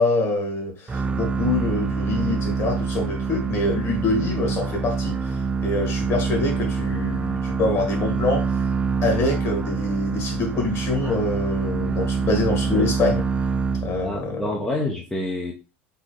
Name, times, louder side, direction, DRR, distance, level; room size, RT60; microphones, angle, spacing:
voice 1, 0.0-8.6 9.0-13.2 13.8-14.4, left 2 dB, 40° left, 3 dB, 2.1 m, -25 dB
sound 1, 0.9-14.3, right 5 dB, 20° right, 0.4 m, -25 dB
voice 2, 14.0-15.5, left 1 dB, 10° left, -1 dB, 0.8 m, -27 dB
4.2 x 3.8 x 3.1 m, 0.32 s
figure-of-eight pair, 80°, 7 cm